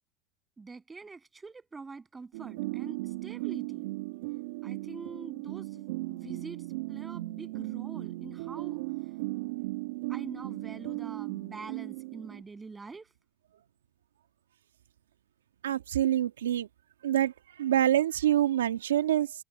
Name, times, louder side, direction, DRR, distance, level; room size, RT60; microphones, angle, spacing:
voice 1, 0.6-3.9 4.6-6.6 6.9-8.8 10.1-13.1, right 4 dB, 15° right, 7.4 m, -45 dB
sound 1, 2.3-12.4, right 21 dB, 75° right, 1.1 m, -37 dB
voice 2, 15.6-16.7 17.0-17.3 17.6-19.3, right 11 dB, 90° right, 1.9 m, -26 dB
hypercardioid pair, 95°, 0 cm